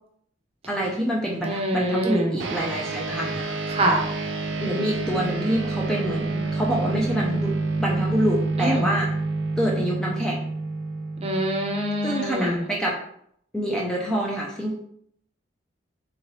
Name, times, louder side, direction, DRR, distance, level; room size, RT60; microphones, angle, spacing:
voice 1, 0.7-3.6 4.6-7.5 7.8-9.1 9.6-10.4 12.0-13.0 13.5-14.8, equal, 5° left, -3 dB, 0.4 m, -26 dB
voice 2, 1.4-2.3 3.7-4.0 8.6-8.9 11.2-12.6, right 1 dB, 35° right, 1 dB, 0.7 m, -24 dB
sound 1, 2.4-12.1, right 3 dB, 85° right, 0.5 m, -28 dB
3.7 x 3.0 x 3.1 m, 0.68 s
head